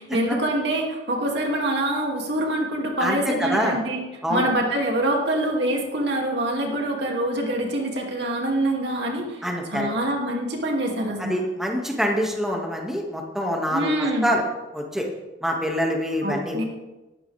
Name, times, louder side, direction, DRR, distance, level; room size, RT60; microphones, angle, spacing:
voice 1, 0.1-4.0 4.3-11.4 13.7-14.3 16.2-16.6, right 1 dB, 65° right, 0 dB, 2.8 m, -25 dB
voice 2, 3.0-3.8 4.2-4.5 9.4-9.9 11.2-14.4 14.7-15.1 15.4-16.6, equal, 5° right, -1 dB, 2.2 m, -25 dB
19.0 x 14.0 x 3.6 m, 1.1 s
head